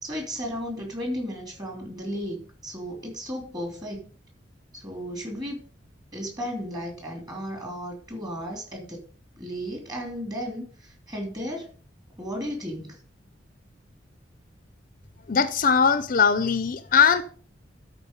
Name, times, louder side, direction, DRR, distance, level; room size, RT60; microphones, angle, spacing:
voice 1, 0.0-4.0 4.7-5.6 6.1-9.0 9.4-11.7 12.2-13.0, equal, 20° right, 3.1 m, -34 dB
voice 2, 15.3-17.2, left 6 dB, 45° left, 0.6 m, -20 dB
13.0 x 4.4 x 5.3 m
head